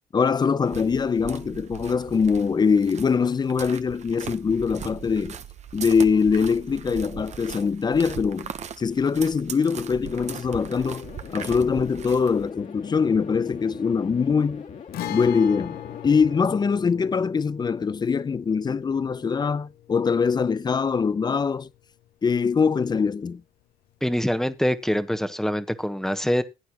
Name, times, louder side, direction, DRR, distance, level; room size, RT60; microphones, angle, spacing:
voice 1, 0.1-5.4 5.7-8.5 8.8-11.1 11.3-14.7 15.1-15.8 16.0-21.7 22.2-23.4, left 5 dB, 25° left, 0.6 m, -23 dB
sound 1, 0.6-12.5, right 8 dB, 40° right, 1.0 m, -39 dB
sound 2, 10.0-16.4, left 6 dB, 50° left, 2.4 m, -41 dB
Guitar, 14.9-22.6 22.8-22.9 24.9-25.1, left 12 dB, 65° left, 0.9 m, -40 dB
voice 2, 24.0-26.4, equal, 5° left, 1.3 m, -24 dB
16.5 x 9.3 x 3.0 m
cardioid pair, 110°, 17 cm